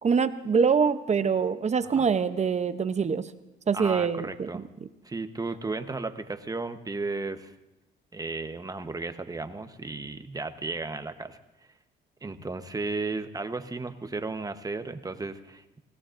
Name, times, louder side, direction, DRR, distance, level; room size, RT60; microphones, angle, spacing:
voice 1, 0.0-3.2 3.7-4.6, right 6 dB, 35° right, 11 dB, 0.7 m, -24 dB
voice 2, 3.7-4.6 5.0-7.5 8.1-11.4 12.2-15.8, right 3 dB, 20° right, 9 dB, 1.0 m, -34 dB
25.5 x 17.5 x 2.6 m, 0.95 s
cardioid pair, 90°, 20 cm